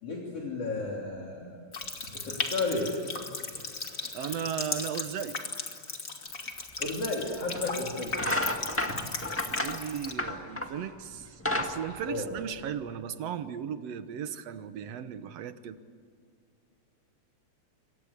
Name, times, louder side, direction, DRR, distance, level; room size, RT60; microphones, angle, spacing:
voice 1, 0.0-1.6 2.1-3.0 6.8-8.4 9.0-9.1 12.1-12.3, left 2 dB, 55° left, -2 dB, 4.0 m, -33 dB
Water tap faucet, 1.7-10.1, left 3 dB, 30° left, 2.3 m, -37 dB
voice 2, 4.1-5.4 9.4-15.8, right 8 dB, 65° right, 11 dB, 2.1 m, -36 dB
sound 1, 6.8-6.9 7.5-7.7 8.1-10.8 11.2-12.9, left 1 dB, 5° left, 1.0 m, -31 dB
28.0 x 23.5 x 8.2 m, 2.2 s
omnidirectional pair, 3.3 m